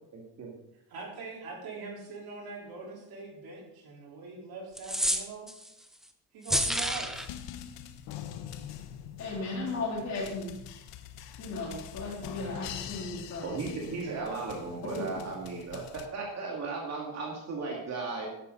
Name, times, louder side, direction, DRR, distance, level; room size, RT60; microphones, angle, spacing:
voice 1, 0.1-0.5 9.3-9.4 13.4-18.3, right 4 dB, 35° right, -2 dB, 2.4 m, -36 dB
voice 2, 0.9-5.5 6.3-7.1 14.0-14.4, right 3 dB, 50° right, -2 dB, 4.4 m, -42 dB
sound 1, 4.8-5.7 6.4-7.3, equal, ahead, 0.5 m, -29 dB
sound 2, 6.5-16.1, left 9 dB, 65° left, 1.1 m, -44 dB
voice 3, 9.2-10.5 11.4-13.6 15.0-15.1, left 3 dB, 35° left, -2 dB, 3.7 m, -35 dB
13.5 x 11.5 x 4.1 m, 0.83 s
cardioid pair, 175°, 46 cm